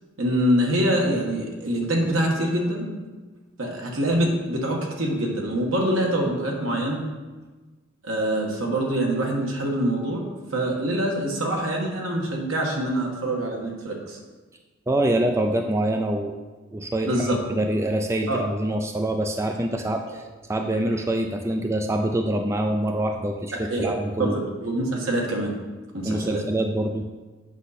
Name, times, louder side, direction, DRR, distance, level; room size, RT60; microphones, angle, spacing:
voice 1, 0.2-2.9 3.6-7.0 8.0-14.2 17.1-17.6 18.3-18.4 19.8-19.9 23.7-23.9 24.2-25.5 25.9-26.4, right 1 dB, 80° right, -1 dB, 1.5 m, -25 dB
voice 2, 14.9-16.4 16.7-20.2 20.5-24.4 26.1-27.1, right 1 dB, 15° right, 4 dB, 0.3 m, -25 dB
8.2 x 5.4 x 4.2 m, 1.3 s
head